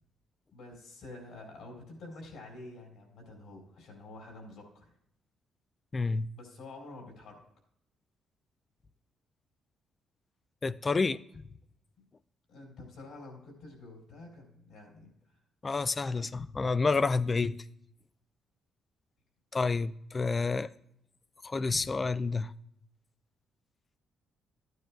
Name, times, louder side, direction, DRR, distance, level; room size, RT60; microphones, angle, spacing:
voice 1, 0.5-4.9 6.4-7.4 12.5-15.1, left 2 dB, 80° left, 4.1 m, -48 dB
voice 2, 5.9-6.3 10.6-11.2 15.6-17.6 19.5-20.7 21.4-22.5, left 4 dB, 30° left, 0.4 m, -29 dB
13.5 x 9.3 x 2.3 m
cardioid pair, 90°, 0 cm